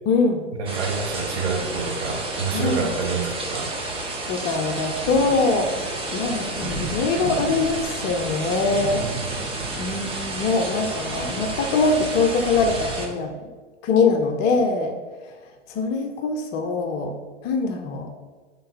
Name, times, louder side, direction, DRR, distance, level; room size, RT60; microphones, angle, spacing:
voice 1, 0.1-0.4 2.5-2.8 4.3-9.0 9.8-13.3 13.8-14.9 15.7-17.1 17.4-18.1, left 4 dB, 30° left, 5 dB, 0.7 m, -23 dB
voice 2, 0.6-3.8, right 4 dB, 60° right, 3 dB, 1.5 m, -27 dB
sound 1, 0.7-13.1, right 2 dB, 15° right, 1.1 m, -30 dB
10.5 x 3.8 x 4.1 m, 1.4 s
hypercardioid pair, 115°, 36 cm